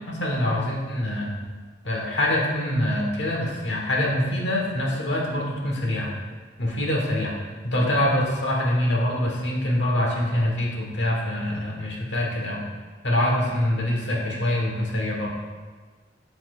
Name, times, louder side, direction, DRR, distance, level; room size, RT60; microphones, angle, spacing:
voice 1, 0.1-1.3 1.8-6.1 6.6-7.4 7.6-12.6 13.0-15.3, left 1 dB, 70° left, -2 dB, 1.4 m, -24 dB
11.5 x 4.4 x 2.5 m, 1.4 s
head